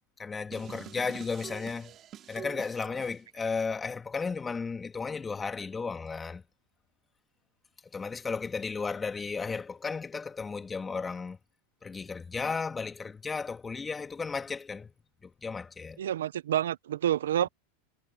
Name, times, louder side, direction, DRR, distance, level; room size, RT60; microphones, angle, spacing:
voice 1, 0.2-1.9 2.3-6.4 7.9-11.4 11.8-14.9 15.2-16.0, left 4 dB, 15° left, 2.7 m, -34 dB
sound 1, 0.5-3.2, right 11 dB, 35° right, 3.3 m, -46 dB
voice 2, 16.0-17.5, right 11 dB, 85° right, 0.8 m, -28 dB
hypercardioid pair, 120°, 0 cm